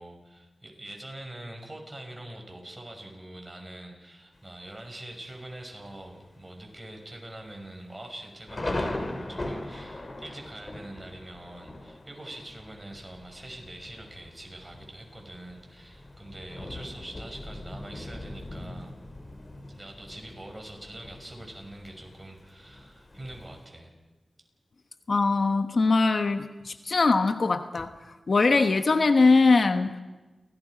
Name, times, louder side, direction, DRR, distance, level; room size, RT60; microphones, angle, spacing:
voice 1, 0.0-19.0 19.7-23.9, right 1 dB, 25° right, 2 dB, 6.4 m, -44 dB
Thunder, 4.3-4.9 5.4-5.5 5.8-6.2 6.6-6.7 7.4-23.7, left 1 dB, 40° left, 3.1 m, -40 dB
voice 2, 25.1-28.0 28.3-30.0, left 3 dB, 60° left, 8 dB, 1.1 m, -22 dB
30.0 x 18.5 x 5.2 m, 1.1 s
cardioid pair, 55°, 0 cm